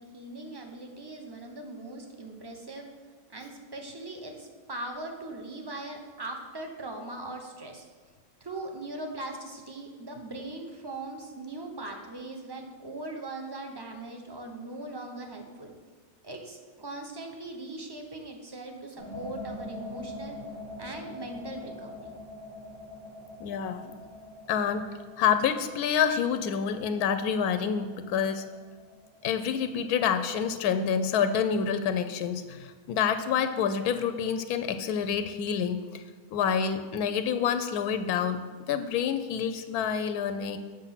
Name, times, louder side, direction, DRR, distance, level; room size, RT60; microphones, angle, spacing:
voice 1, 0.0-2.9 3.3-7.8 8.4-15.7 16.2-20.4 20.8-22.1, right 2 dB, 20° right, 3 dB, 0.8 m, -40 dB
sound 1, 18.9-30.7, left 1 dB, 55° right, 3.5 m, -45 dB
voice 2, 23.4-23.9 24.5-28.4 29.2-36.0 36.3-38.4 38.7-40.6, left 7 dB, 85° left, 10 dB, 1.1 m, -28 dB
7.7 x 6.3 x 5.8 m, 1.4 s
omnidirectional pair, 1.6 m